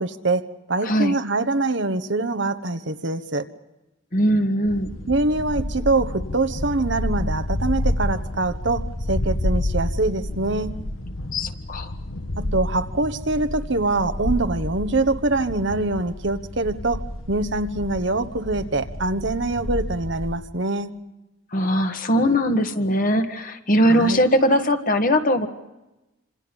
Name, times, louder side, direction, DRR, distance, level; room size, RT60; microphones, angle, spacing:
voice 1, 0.0-3.5 5.1-10.7 12.4-20.9 23.9-24.2, right 2 dB, 60° right, 9 dB, 1.2 m, -24 dB
voice 2, 0.8-1.1 4.1-4.9 11.3-11.9 21.5-25.5, equal, 45° left, 6 dB, 1.8 m, -20 dB
sound 1, 4.7-20.4, left 1 dB, 75° left, 1.4 m, -29 dB
28.5 x 27.0 x 5.4 m, 0.99 s
head